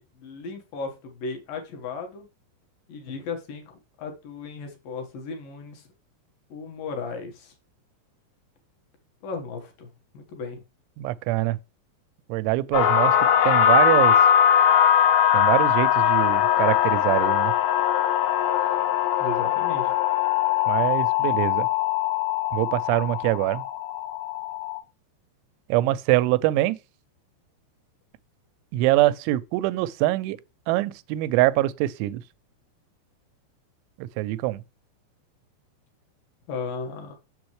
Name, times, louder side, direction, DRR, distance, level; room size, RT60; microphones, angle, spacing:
voice 1, 0.0-2.3 2.9-3.6 4.0-5.9 6.5-7.5 9.2-10.6 19.2-19.9 36.5-37.1, left 4 dB, 60° left, 2.6 m, -35 dB
voice 2, 11.0-11.6 12.3-13.2 13.4-14.2 15.3-17.5 20.7-21.7 22.5-23.6 25.7-26.8 28.7-30.4 30.7-32.2 34.0-34.6, right 16 dB, 90° right, 2.9 m, -24 dB
sound 1, 12.7-24.8, left 10 dB, 75° left, 2.8 m, -21 dB
7.3 x 7.0 x 3.1 m
omnidirectional pair, 5.3 m